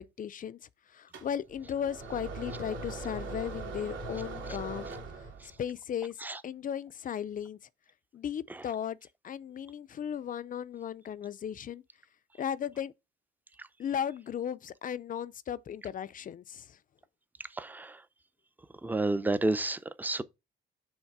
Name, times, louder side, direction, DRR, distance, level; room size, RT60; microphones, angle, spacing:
voice 1, 0.2-0.6 0.9-4.9 5.6-6.1 6.4-7.6 8.1-9.0 9.2-11.8 12.4-12.9 13.8-16.6, left 9 dB, 45° left, 0.5 m, -36 dB
sound 1, 1.1-5.6, right 3 dB, 80° right, 2.3 m, -40 dB
voice 2, 17.6-17.9 18.8-20.2, right 2 dB, 10° right, 0.5 m, -30 dB
7.2 x 3.2 x 4.7 m
cardioid pair, 90°, 20 cm